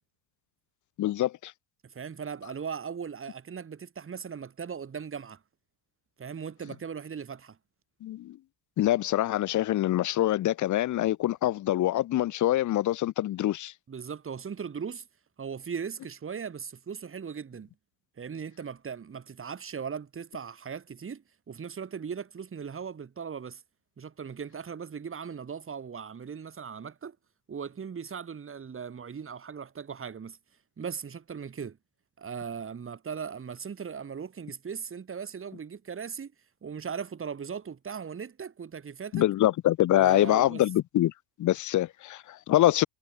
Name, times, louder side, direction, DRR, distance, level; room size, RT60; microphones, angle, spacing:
voice 1, 1.0-1.5 8.0-8.4 8.8-13.7 39.1-41.1 41.4-42.9, left 14 dB, 35° left, 0.8 m, -25 dB
voice 2, 1.8-5.4 6.2-7.6 13.9-15.1 15.4-17.7 18.2-23.6 24.0-27.2 27.5-30.4 30.8-31.8 32.2-36.3 36.6-39.2 39.9-40.6, right 6 dB, 25° right, 2.6 m, -38 dB
hypercardioid pair, 80°, 49 cm